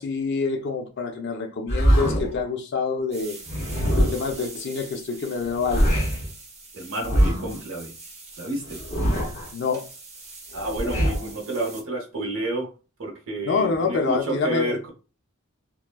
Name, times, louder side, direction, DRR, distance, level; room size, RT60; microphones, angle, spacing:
voice 1, 0.0-3.4 3.9-5.9 9.5-9.9 13.4-14.8, left 4 dB, 50° left, 0.4 m, -26 dB
sound 1, 1.7-2.4 3.5-4.4 5.4-6.3 7.0-7.6 8.6-9.5 10.5-11.3, equal, 30° left, 0.8 m, -23 dB
sound 2, 3.1-11.8, right 3 dB, 30° right, 0.6 m, -43 dB
voice 2, 6.7-7.9 8.4-8.8 10.5-12.7 13.0-14.9, right 1 dB, 70° right, 0.8 m, -30 dB
2.9 x 2.1 x 2.2 m
head